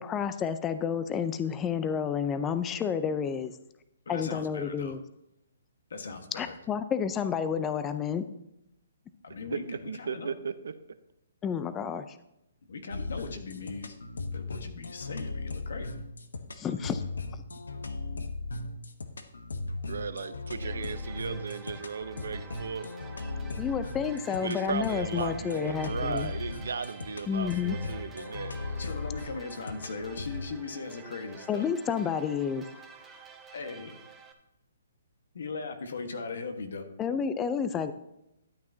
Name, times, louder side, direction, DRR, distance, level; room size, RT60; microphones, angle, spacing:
voice 1, 0.0-3.5 4.1-5.0 6.3-8.2 11.4-12.2 16.5-17.0 23.6-26.3 27.3-27.8 31.5-32.6 37.0-37.9, left 7 dB, 15° left, 11 dB, 0.5 m, -30 dB
voice 2, 4.0-5.0 5.9-6.6 9.2-10.3 12.7-14.0 14.3-16.0 28.8-31.7 33.5-34.0 35.3-36.9, left 4 dB, 70° left, 6 dB, 1.4 m, -39 dB
voice 3, 9.3-10.7 19.9-22.9 24.4-28.8, right 5 dB, 75° right, 11 dB, 0.8 m, -36 dB
sound 1, 12.9-30.5, left 3 dB, 90° left, 1.0 m, -38 dB
sound 2, 20.6-34.3, right 5 dB, 15° right, 1.0 m, -49 dB
12.5 x 8.4 x 2.8 m, 0.85 s
hypercardioid pair, 145°, 0 cm